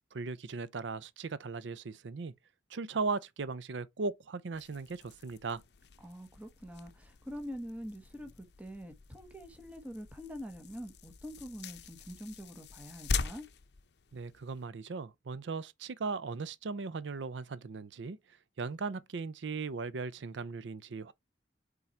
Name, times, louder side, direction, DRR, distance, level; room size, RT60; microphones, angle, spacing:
voice 1, 0.1-2.3 2.7-5.6 14.1-18.2 18.6-21.1, right 4 dB, 85° right, 0.5 m, -38 dB
sound 1, 4.5-14.7, left 5 dB, 65° left, 0.6 m, -43 dB
voice 2, 6.0-13.5, equal, 10° right, 1.0 m, -45 dB
5.7 x 3.9 x 4.3 m
head